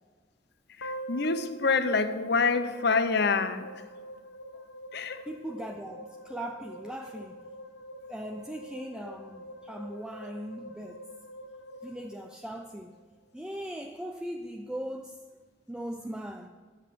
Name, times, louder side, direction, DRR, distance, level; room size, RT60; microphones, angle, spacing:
sound 1, 0.8-13.0, equal, 80° left, 1.6 m, -45 dB
voice 1, 0.8-3.8 4.9-5.3, left 4 dB, 60° left, 0.7 m, -27 dB
voice 2, 5.3-7.5 8.1-11.0 11.8-13.0 13.3-15.2 15.7-16.5, right 1 dB, 5° right, 0.4 m, -39 dB
9.5 x 7.3 x 7.6 m
head